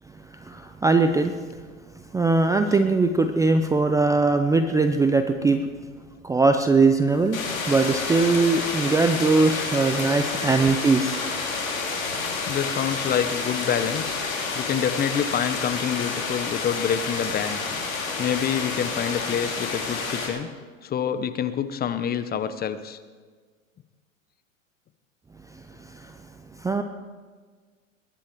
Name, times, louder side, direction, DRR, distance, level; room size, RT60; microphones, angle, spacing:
voice 1, 0.4-1.4 2.1-5.7 6.2-7.4 7.7-11.2 25.9-26.1 26.6-26.8, right 3 dB, 10° right, 8 dB, 0.5 m, -21 dB
sound 1, 7.3-20.3, left 4 dB, 80° left, 3.9 m, -29 dB
voice 2, 12.5-14.2 14.5-17.6 18.2-20.5 20.8-23.0, left 8 dB, 25° left, 12 dB, 0.8 m, -27 dB
21.5 x 10.5 x 4.6 m, 1.5 s
hypercardioid pair, 105°, 40 cm